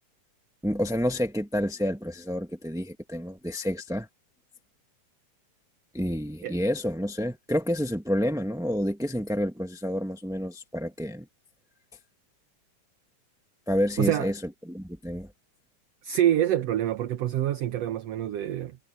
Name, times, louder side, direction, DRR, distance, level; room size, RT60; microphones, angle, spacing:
voice 1, 0.6-4.1 5.9-11.3 13.7-14.4 14.7-15.3, equal, 5° right, 0.6 m, -29 dB
voice 2, 14.0-14.3 16.0-18.8, right 11 dB, 65° right, 1.8 m, -26 dB
omnidirectional pair, 3.5 m